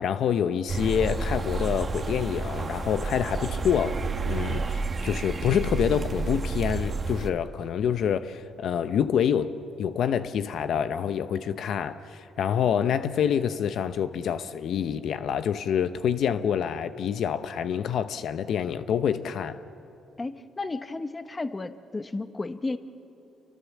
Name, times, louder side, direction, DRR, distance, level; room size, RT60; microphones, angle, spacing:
voice 1, 0.0-4.0 4.3-19.6, left 8 dB, 70° left, 0.8 m, -27 dB
sound 1, 0.7-7.3, right 3 dB, 35° right, 1.4 m, -30 dB
voice 2, 20.2-22.8, left 3 dB, 25° left, 1.1 m, -33 dB
28.0 x 24.0 x 7.4 m
cardioid pair, 90°, 0 cm